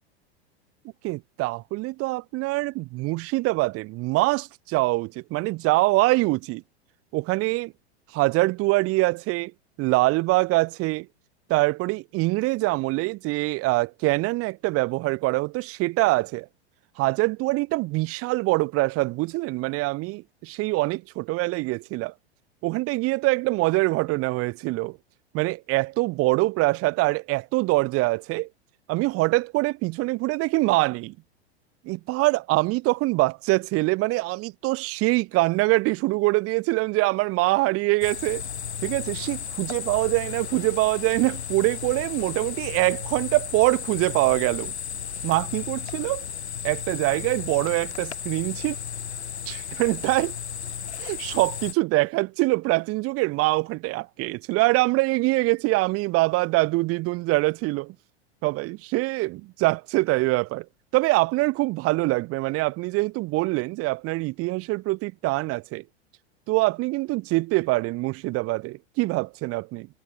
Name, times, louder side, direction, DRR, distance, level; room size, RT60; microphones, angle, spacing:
voice 1, 1.0-6.6 7.1-7.7 8.1-9.5 9.8-11.1 11.5-16.5 17.0-22.1 22.6-25.0 25.3-28.5 28.9-31.1 31.8-38.4 38.8-44.7 45.2-46.3 46.6-48.8 49.5-50.4 51.0-57.9 58.4-60.7 60.9-65.8 66.5-69.9, right 22 dB, 45° right, 2.9 m, -24 dB
sound 1, 38.0-51.7, left 8 dB, 80° left, 4.5 m, -34 dB
figure-of-eight pair, 95°, 33 cm